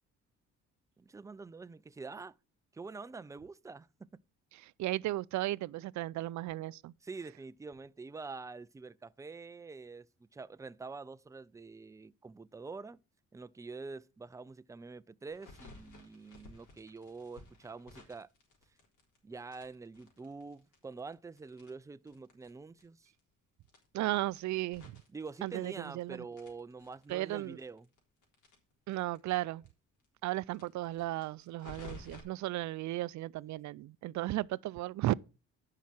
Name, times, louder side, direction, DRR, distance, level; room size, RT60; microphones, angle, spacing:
voice 1, 1.0-2.4 2.7-4.1 7.0-13.0 13.3-18.3 19.2-23.1 25.1-27.9, right 4 dB, 10° right, 0.4 m, -46 dB
voice 2, 4.6-6.9 23.9-25.0 25.4-26.2 27.1-27.6 28.9-29.6 30.2-35.1, right 16 dB, 70° right, 0.5 m, -35 dB
sound 1, 15.3-19.2 19.5-22.5 22.8-22.9 23.1-23.2 23.6-26.0 26.3-29.3 29.6-29.7 30.0-30.1 30.5-32.2, left 3 dB, 80° left, 3.8 m, -54 dB
10.0 x 5.8 x 6.0 m
cardioid pair, 90°, 30 cm